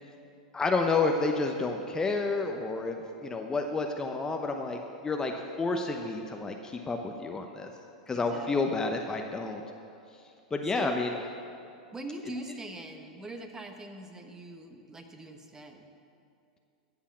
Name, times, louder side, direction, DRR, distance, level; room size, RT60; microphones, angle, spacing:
voice 1, 0.5-7.7 8.1-9.6 10.5-11.2, left 3 dB, 15° left, 3 dB, 0.8 m, -30 dB
voice 2, 8.1-8.5 10.7-11.1 11.9-15.9, right 1 dB, 15° right, 5 dB, 1.1 m, -42 dB
15.0 x 5.6 x 7.3 m, 2.5 s
hypercardioid pair, 105°, 4 cm